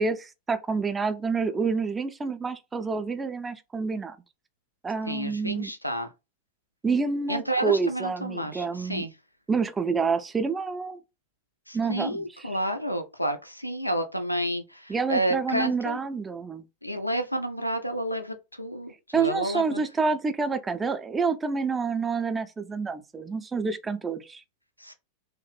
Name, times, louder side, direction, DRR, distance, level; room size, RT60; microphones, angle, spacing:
voice 1, 0.0-4.2 4.8-5.7 6.8-9.1 9.5-11.0 11.7-12.6 14.9-16.7 19.1-24.4, right 4 dB, 15° right, 0.4 m, -28 dB
voice 2, 5.1-6.1 7.3-9.1 11.7-16.0 16.8-19.8 24.8-24.9, right 1 dB, 90° left, 0.3 m, -30 dB
3.0 x 2.0 x 3.2 m
figure-of-eight pair, 90°, 0 cm